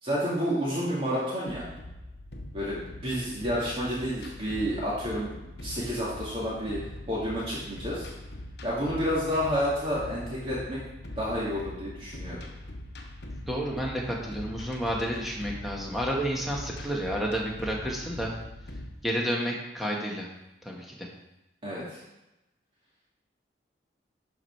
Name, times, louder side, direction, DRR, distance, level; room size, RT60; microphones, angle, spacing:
voice 1, 0.0-1.7 2.5-6.8 7.1-8.1 8.6-10.8 11.2-12.4 21.6-22.0, equal, 30° right, -7 dB, 2.4 m, -30 dB
sound 1, 1.5-18.9, left 1 dB, 60° left, 1.1 m, -42 dB
voice 2, 13.5-18.3 19.0-20.3 20.6-21.1, equal, ahead, -3 dB, 1.6 m, -30 dB
12.0 x 5.0 x 4.7 m, 0.96 s
head